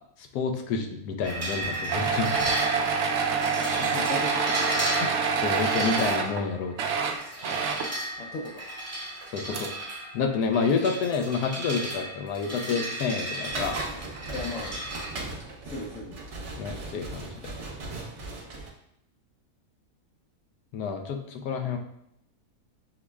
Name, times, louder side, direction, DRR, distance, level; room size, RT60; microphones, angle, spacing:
voice 1, 0.2-2.5 5.4-6.8 9.3-9.7 10.1-13.8 16.6-17.4 20.7-21.8, left 5 dB, 90° left, 3 dB, 1.2 m, -29 dB
sound 1, 1.2-15.1, right 1 dB, 10° right, 0.9 m, -35 dB
sound 2, 1.9-6.4 6.7-7.9 9.2-9.3 9.5-9.7, right 5 dB, 75° right, 0.6 m, -27 dB
voice 2, 3.8-5.1 8.2-8.7 14.3-14.8 15.6-16.2, left 2 dB, 65° left, -3 dB, 1.0 m, -37 dB
sound 3, 13.5-18.7, right 2 dB, 55° right, 1.0 m, -37 dB
6.1 x 2.1 x 3.4 m, 0.77 s
omnidirectional pair, 1.7 m